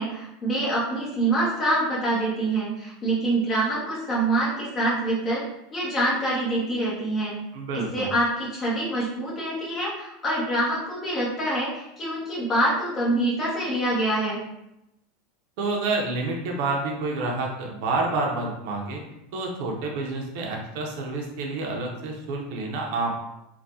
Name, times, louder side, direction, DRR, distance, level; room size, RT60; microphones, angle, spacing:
voice 1, 0.0-5.4 5.7-7.3 7.7-14.4, right 1 dB, 25° left, -6 dB, 1.2 m, -25 dB
voice 2, 7.5-8.1 15.6-19.0 19.3-23.1, right 3 dB, 65° right, 0 dB, 0.7 m, -28 dB
3.5 x 2.3 x 2.7 m, 0.87 s
supercardioid pair, 140°, 0 cm